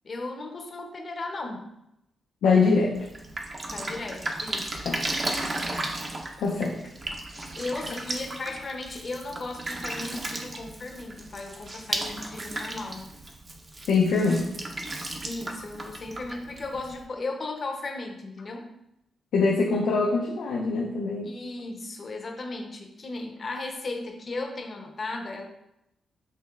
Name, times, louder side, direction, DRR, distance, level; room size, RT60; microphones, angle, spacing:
voice 1, 0.0-1.7 3.7-4.8 7.4-13.1 15.2-18.7 21.2-25.4, left 2 dB, 45° left, 2 dB, 0.7 m, -36 dB
voice 2, 2.4-3.0 4.9-5.0 6.4-6.8 13.9-14.5 19.3-21.3, left 4 dB, 90° left, -3 dB, 0.5 m, -23 dB
Drip, 2.9-17.0, right 2 dB, 30° right, 0.6 m, -35 dB
5.6 x 3.1 x 2.4 m, 0.84 s
cardioid pair, 105°, 0 cm